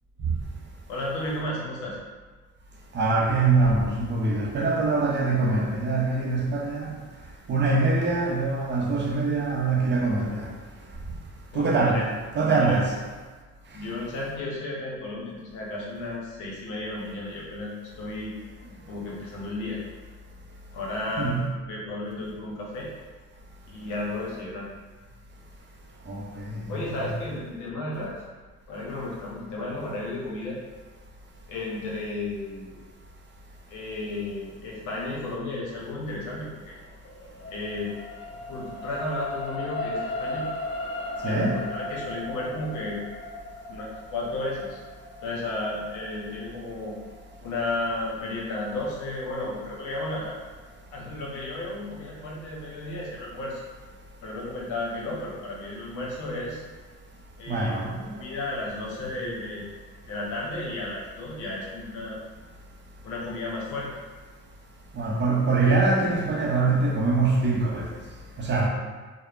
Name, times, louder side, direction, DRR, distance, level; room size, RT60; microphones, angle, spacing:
voice 1, 0.9-2.0 11.5-12.1 12.4-12.9 13.7-18.3 18.9-19.8 20.7-21.4 21.7-22.9 23.7-24.7 26.7-28.2 28.7-30.6 31.5-32.8 33.7-36.7 37.5-38.0 38.5-40.5 41.2-43.0 43.7-44.8 45.2-46.9 47.4-50.3 50.9-53.6 54.2-56.6 57.4-57.8 58.1-59.7 60.1-62.2 63.0-63.9, left 2 dB, 80° left, 0.8 m, -33 dB
voice 2, 2.9-6.9 7.5-10.5 11.5-12.1 12.3-13.0 21.2-21.5 26.1-27.1 41.2-41.6 57.5-58.2 65.0-67.9 68.4-68.7, right 3 dB, 40° right, 0.6 m, -24 dB
sound 1, 36.6-49.1 49.7-49.8, left 2 dB, 40° left, 0.5 m, -37 dB
3.0 x 2.0 x 2.4 m
supercardioid pair, 75°, 30 cm